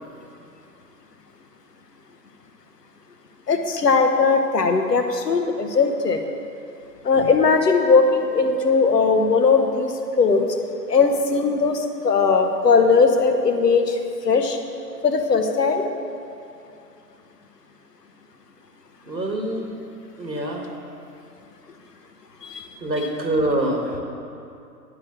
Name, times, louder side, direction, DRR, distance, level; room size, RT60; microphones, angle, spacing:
voice 1, 3.5-6.2 7.0-10.5 10.9-14.0 14.2-14.6 15.0-15.9 22.4-22.6, left 4 dB, 70° left, 5 dB, 1.1 m, -19 dB
voice 2, 19.1-19.7 20.2-20.7 22.8-24.0, right 1 dB, 85° right, 1 dB, 1.7 m, -25 dB
10.5 x 5.1 x 7.2 m, 2.7 s
figure-of-eight pair, 130°, 50 cm